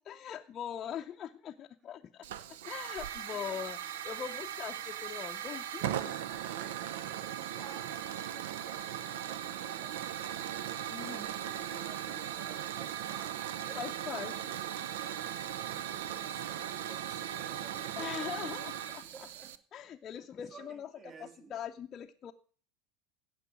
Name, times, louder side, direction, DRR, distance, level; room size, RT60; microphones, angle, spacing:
voice 1, 0.0-2.2 2.6-3.8 4.0-6.1 10.9-11.2 13.8-14.5 18.0-19.0 19.7-20.9 21.2-22.3, left 9 dB, 35° left, 0.6 m, -41 dB
Hiss / Fire, 2.2-19.6, right 11 dB, 65° right, 0.6 m, -38 dB
voice 2, 3.3-3.7 6.5-14.2 15.0-18.7 19.0-19.6 20.1-20.2 20.5-21.6, right 5 dB, 35° right, 1.6 m, -54 dB
16.5 x 6.0 x 6.1 m
figure-of-eight pair, 75°, 0 cm